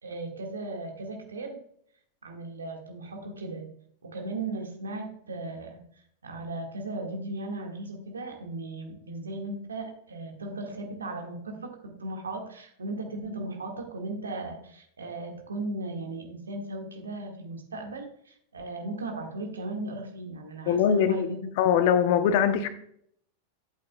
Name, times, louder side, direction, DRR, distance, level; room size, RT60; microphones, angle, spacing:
voice 1, 0.0-1.6 2.2-3.7 4.0-5.8 6.2-21.5, right 2 dB, 70° right, 2 dB, 1.8 m, -36 dB
voice 2, 20.7-21.3 21.6-22.7, left 8 dB, 50° left, 11 dB, 0.8 m, -22 dB
11.0 x 8.4 x 2.3 m, 0.65 s
figure-of-eight pair, 90°, 0 cm